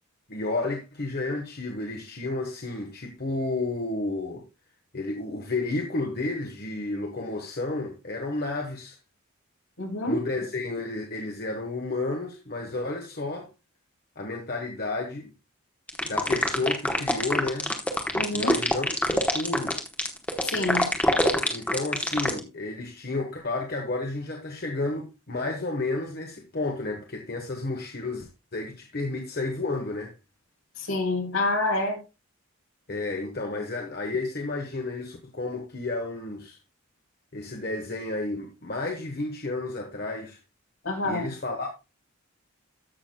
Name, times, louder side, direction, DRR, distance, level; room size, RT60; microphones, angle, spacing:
voice 1, 0.3-4.4 4.9-9.0 10.1-13.5 14.2-15.3 16.0-17.7 18.3-19.8 21.5-30.1 32.9-36.6 37.3-40.4 41.0-41.7, left 2 dB, 45° left, 1.1 m, -31 dB
voice 2, 9.8-10.2 18.2-18.6 20.4-20.9 30.8-32.0 40.8-41.3, left 2 dB, 70° left, 2.6 m, -27 dB
sound 1, 15.9-22.4, left 1 dB, 5° left, 1.0 m, -24 dB
14.0 x 6.2 x 2.2 m
head